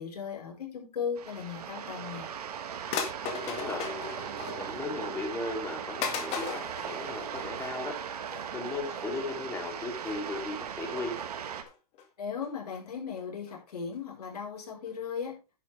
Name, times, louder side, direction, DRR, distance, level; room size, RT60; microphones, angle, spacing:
voice 1, 0.0-2.3 12.2-15.4, left 6 dB, 75° left, 0 dB, 5.1 m, -37 dB
sound 1, 1.2-11.6, right 8 dB, 75° right, 1.8 m, -38 dB
sound 2, 2.1-2.2 2.9-4.9 5.3-5.4 6.0-7.8 8.2-8.5 8.9-9.1 9.6-9.7 10.0-10.1 10.8-11.3 11.7-12.0 12.4-12.8 13.2-13.3 13.5-13.6 13.9-14.0 14.2-14.3 14.6-14.7 14.9-15.0, left 6 dB, 30° left, 2.2 m, -37 dB
voice 2, 3.2-3.9 4.6-8.0 8.5-11.2, left 3 dB, 15° left, 2 dB, 3.4 m, -36 dB
11.0 x 8.6 x 3.6 m, 0.30 s
hypercardioid pair, 135°, 20 cm